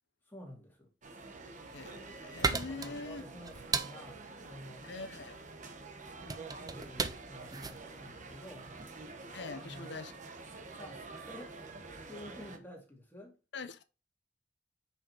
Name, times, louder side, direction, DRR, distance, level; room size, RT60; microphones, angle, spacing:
voice 1, 0.3-0.9 2.5-4.9 6.0-8.7 9.4-9.9 10.8-11.6 11.9-13.3, left 1 dB, 10° left, 2.5 m, -50 dB
sound 1, 1.0-12.6, right 3 dB, 45° right, 1.1 m, -48 dB
sound 2, 1.5-9.0, right 4 dB, 20° right, 0.5 m, -38 dB
voice 2, 1.7-3.2 4.8-5.4 9.3-10.1 13.5-13.8, left 3 dB, 65° left, 0.8 m, -43 dB
Piano, 2.6-12.7, right 2 dB, 60° right, 3.6 m, -64 dB
6.3 x 5.4 x 3.0 m
head